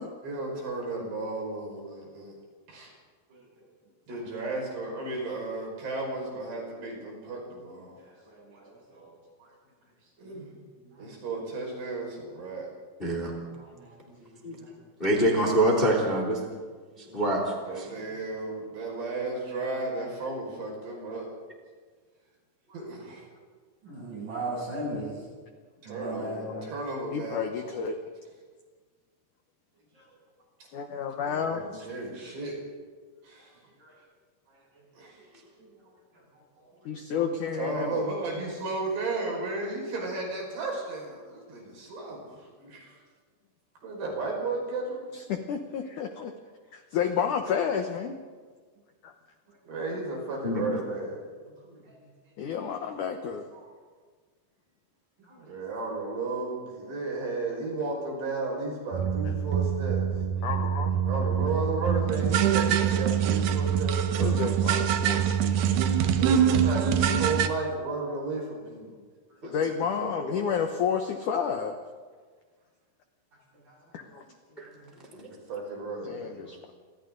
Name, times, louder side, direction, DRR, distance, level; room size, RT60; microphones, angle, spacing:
voice 1, 0.2-2.3 2.7-2.9 4.1-8.0 10.2-10.5 11.0-12.7 17.7-21.3 22.7-23.3 25.8-27.5 31.2-32.6 33.2-33.6 35.0-35.2 37.5-43.0 43.8-45.1 49.7-51.3 55.4-60.0 61.1-64.5 66.2-69.0 69.4-70.6 75.1-76.6, right 3 dB, 65° right, -1 dB, 7.6 m, -34 dB
voice 2, 8.3-9.1 10.3-10.4 13.6-13.9 14.5-14.6 23.8-25.2 25.9-26.6 33.8-33.9 55.3-55.4 73.7-73.8, right 1 dB, 45° right, -3 dB, 9.3 m, -37 dB
voice 3, 13.0-13.3 14.4-14.5 15.0-16.4 17.1-17.8 50.4-50.6 74.6-74.7, right 1 dB, 15° left, 0 dB, 2.8 m, -25 dB
voice 4, 26.1-26.7 27.1-28.0 30.7-31.8 36.9-38.1 45.1-46.3 46.7-48.2 49.0-49.1 52.4-53.5 59.3-59.4 60.4-61.0 64.2-65.6 69.5-71.8 73.9-74.2 76.0-76.6, left 7 dB, 75° left, 5 dB, 1.9 m, -31 dB
sound 1, 58.9-67.5, right 8 dB, 90° right, 1.7 m, -25 dB
29.5 x 26.0 x 4.0 m, 1.5 s
omnidirectional pair, 5.1 m